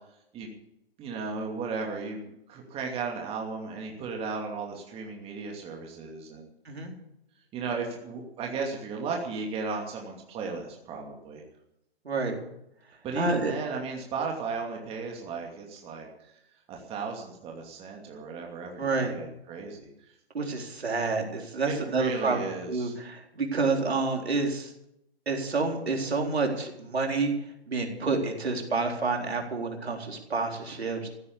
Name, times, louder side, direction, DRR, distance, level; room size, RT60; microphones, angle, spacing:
voice 1, 1.0-6.5 7.5-11.4 13.0-16.3 16.7-19.9 21.6-23.0, right 4 dB, 20° right, 1 dB, 2.7 m, -35 dB
voice 2, 12.0-12.4 13.1-13.5 18.8-19.1 20.3-24.7 25.3-27.3 27.7-31.1, right 3 dB, 75° right, 2 dB, 4.0 m, -29 dB
15.5 x 9.6 x 8.5 m, 0.80 s
figure-of-eight pair, 135°, 32 cm